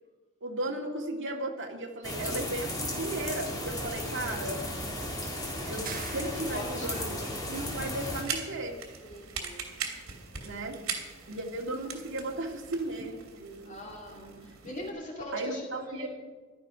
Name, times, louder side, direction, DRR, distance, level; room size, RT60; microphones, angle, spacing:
voice 1, 0.4-4.6 5.7-7.1 7.5-8.8 10.4-10.8 11.3-13.8 14.1-14.5 15.3-16.1, right 1 dB, 60° right, 0 dB, 2.4 m, -35 dB
sound 1, 2.0-8.2, left 1 dB, 20° left, 3.2 m, -35 dB
sound 2, 5.9-6.9, right 7 dB, 45° right, 1.3 m, -43 dB
voice 2, 6.4-7.1 9.0-9.7 13.6-16.2, equal, 35° left, -1 dB, 2.7 m, -41 dB
sound 3, 6.8-14.9, right 6 dB, 80° right, 2.9 m, -41 dB
16.5 x 12.5 x 5.1 m, 1.4 s
head